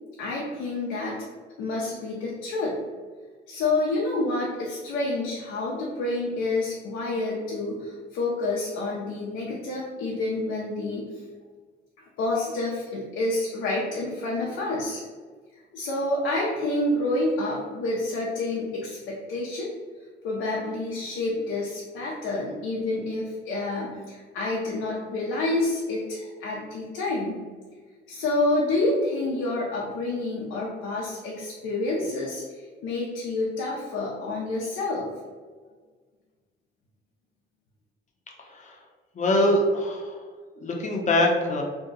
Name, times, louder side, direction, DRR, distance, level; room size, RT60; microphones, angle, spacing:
voice 1, 0.2-1.2 1.6-2.8 3.5-11.2 12.2-15.0 15.7-19.7 20.2-27.4 28.1-35.1, left 2 dB, 85° left, -4 dB, 0.6 m, -28 dB
voice 2, 38.4-38.8 39.1-40.2 40.6-41.6, left 1 dB, 40° left, 0 dB, 0.7 m, -23 dB
2.7 x 2.2 x 3.8 m, 1.5 s
cardioid pair, 90°, 20 cm